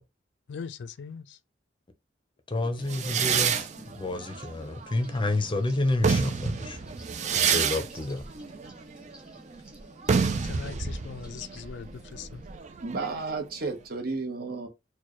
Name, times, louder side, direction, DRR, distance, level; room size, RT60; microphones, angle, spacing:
voice 1, 0.5-1.4 10.2-12.4, left 6 dB, 75° left, 0.3 m, -41 dB
voice 2, 2.5-3.7 3.9-6.8 7.3-8.2, left 2 dB, 30° left, 0.5 m, -29 dB
Distorted Faucet, 2.8-12.6, equal, 5° right, 1.1 m, -52 dB
sound 1, 2.9-5.4 5.8-13.3, right 6 dB, 40° right, 0.4 m, -29 dB
voice 3, 12.8-14.7, right 3 dB, 60° right, 1.0 m, -32 dB
4.4 x 2.2 x 3.0 m
head